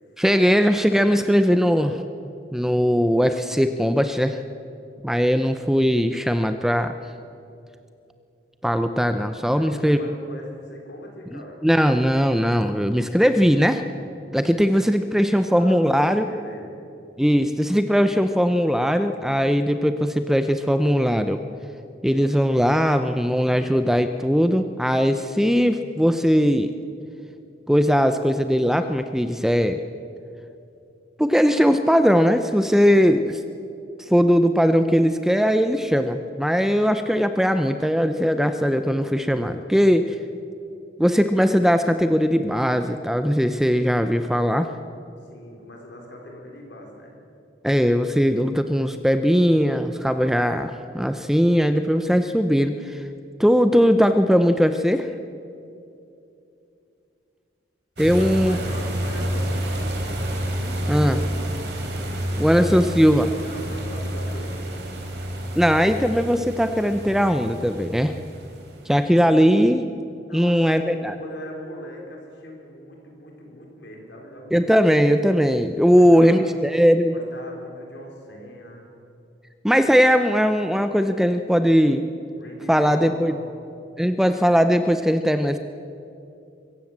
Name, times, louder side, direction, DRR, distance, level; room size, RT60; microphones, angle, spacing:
voice 1, 0.2-2.0 2.5-4.4 5.0-6.9 8.6-10.0 11.6-13.8 14.3-16.2 17.2-21.4 22.0-26.7 27.7-29.8 31.2-33.4 34.0-40.2 41.0-44.7 47.6-53.0 53.4-55.1 58.0-58.6 60.9-61.2 62.4-63.3 65.5-68.1 68.9-69.8 70.3-71.1 74.5-77.1 79.6-82.0 82.7-83.3 84.0-85.6, equal, ahead, 9 dB, 0.5 m, -19 dB
voice 2, 9.3-11.6 15.5-16.8 45.2-47.2 48.4-48.5 58.1-60.2 63.4-64.7 70.3-74.7 75.9-76.6 77.1-78.9 82.4-83.6, equal, 70° left, 1 dB, 4.3 m, -40 dB
sound 1, 58.0-69.1, right 1 dB, 65° right, 3.6 m, -29 dB
24.0 x 15.0 x 7.3 m, 2.6 s
head